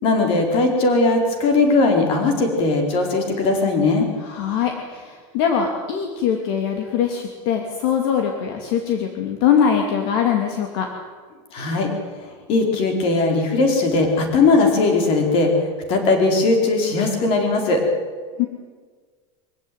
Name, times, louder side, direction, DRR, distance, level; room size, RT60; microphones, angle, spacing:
voice 1, 0.0-4.1 11.5-11.9 12.5-17.8, left 3 dB, 40° left, 3 dB, 4.6 m, -19 dB
voice 2, 4.2-10.9 18.4-18.5, left 8 dB, 55° left, 3 dB, 2.7 m, -22 dB
24.0 x 16.0 x 9.5 m, 1.5 s
supercardioid pair, 175°, 15 cm